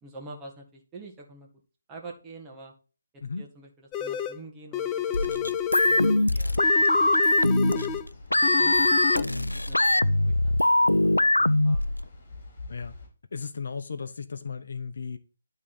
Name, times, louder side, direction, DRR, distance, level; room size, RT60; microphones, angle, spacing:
voice 1, 0.0-1.5 1.9-2.7 3.4-6.6 7.0-7.8 8.3-11.9, right 3 dB, 15° right, 1.7 m, -47 dB
sound 1, 3.9-4.4 4.7-6.3 6.6-8.1 8.4-9.2, left 9 dB, 20° left, 0.5 m, -30 dB
sound 2, 5.1-12.1, left 1 dB, 90° left, 0.3 m, -22 dB
sound 3, 5.8-13.1, left 3 dB, 45° left, 3.8 m, -49 dB
voice 2, 13.3-15.2, left 5 dB, 60° left, 0.8 m, -35 dB
11.0 x 3.8 x 4.3 m
figure-of-eight pair, 145°, 0 cm